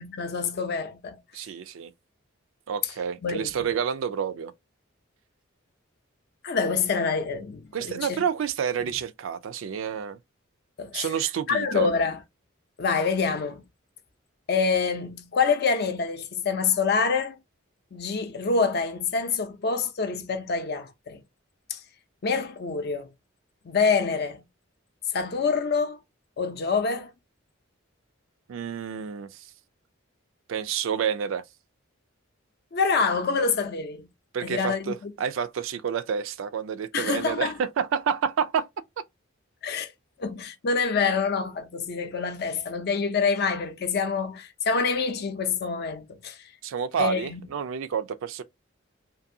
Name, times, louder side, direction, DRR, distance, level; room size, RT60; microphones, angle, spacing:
voice 1, 0.0-1.2 3.2-3.5 6.4-8.2 10.8-11.1 11.5-12.2 12.8-13.6 14.5-17.4 17.9-21.2 21.7-21.8 22.2-23.1 23.7-24.4 25.1-26.0 26.4-27.1 32.7-34.1 34.4-35.1 36.9-37.5 39.6-39.9 40.2-46.4 47.0-47.4, left 5 dB, 50° left, 0.5 m, -26 dB
voice 2, 1.3-1.9 2.7-4.5 7.7-10.2 10.9-11.9 28.5-29.5 30.5-31.4 34.3-38.7 46.6-48.4, right 7 dB, 70° right, 0.3 m, -29 dB
2.6 x 2.6 x 2.6 m
head